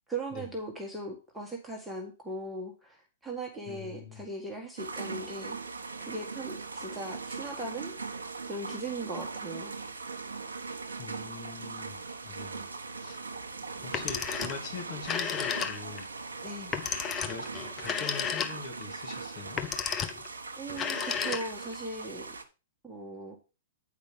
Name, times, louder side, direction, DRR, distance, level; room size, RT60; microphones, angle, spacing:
voice 1, 0.1-5.6 6.1-9.8 16.4-16.7 20.5-22.4 22.8-23.4, right 2 dB, 5° right, 1.9 m, -39 dB
voice 2, 3.7-4.2 11.0-12.7 12.9-13.2 13.8-16.1 17.2-17.5 17.8-19.6, left 6 dB, 40° left, 2.8 m, -43 dB
sound 1, 4.8-22.4, right 4 dB, 75° right, 1.3 m, -40 dB
Telephone, 13.8-14.7 15.0-16.0 16.7-18.8 19.5-20.3 20.7-21.7, left 7 dB, 20° left, 1.0 m, -32 dB
9.1 x 5.1 x 5.2 m
figure-of-eight pair, 110°, 0 cm